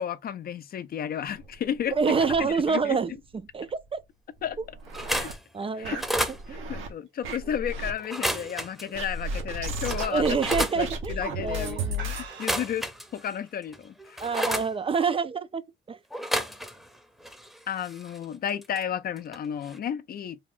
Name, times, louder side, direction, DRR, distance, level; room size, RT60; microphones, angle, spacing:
voice 1, 0.0-1.9 2.4-3.0 4.4-4.6 5.1-5.3 5.8-6.0 6.5-10.4 10.8-11.8 12.4-14.2 17.7-20.4, left 9 dB, 50° left, 0.4 m, -32 dB
sound 1, 1.3-2.9 3.2-3.3 3.7-3.8 4.4-5.3 5.8-6.9 7.2-7.9 8.9-12.3, right 1 dB, 85° right, 1.1 m, -34 dB
voice 2, 1.9-3.1 3.5-4.0 5.5-6.0 6.5-6.7 10.1-12.1 14.2-16.0, right 5 dB, 30° right, 0.4 m, -27 dB
sound 2, 4.9-5.4 5.9-6.4 8.0-8.8 9.4-9.5 9.8-10.8 12.3-13.3 13.7-14.7 16.1-17.0 17.2-18.8 19.2-19.4 19.6-19.8, equal, ahead, 0.7 m, -31 dB
sound 3, 5.8-8.9 9.3-9.6 10.0-10.1 10.9-11.2 11.5-11.6 11.9-12.9, right 5 dB, 70° right, 1.6 m, -45 dB
3.4 x 2.4 x 3.5 m
cardioid pair, 90°, 20 cm